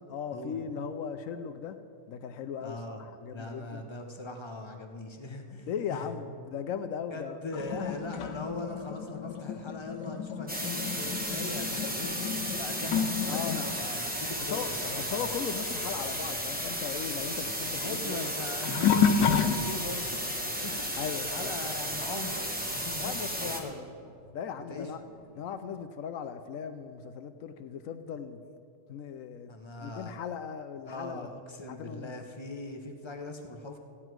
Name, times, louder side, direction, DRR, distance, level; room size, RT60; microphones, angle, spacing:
voice 1, 0.1-1.8 2.1-2.8 3.2-3.8 5.7-7.4 7.7-8.0 13.3-13.8 14.5-18.3 21.0-21.6 22.0-22.1 23.0-23.7 24.3-25.0 25.4-28.4 28.9-29.5 29.8-31.3 31.7-32.1, left 7 dB, 70° left, 10 dB, 0.8 m, -38 dB
voice 2, 2.6-3.0 3.3-6.1 7.1-12.1 12.5-15.4 17.8-23.1 23.4-23.9 24.7-24.9 29.5-30.1 30.8-33.8, left 2 dB, 35° left, 3 dB, 0.4 m, -40 dB
sound 1, 7.5-15.5 15.8-20.1 20.7-21.1 23.3-23.4 24.3-24.4, left 7 dB, 85° left, 1.3 m, -32 dB
sound 2, 10.5-23.6, equal, 5° right, 1.0 m, -34 dB
15.0 x 9.9 x 4.6 m, 2.5 s
omnidirectional pair, 1.8 m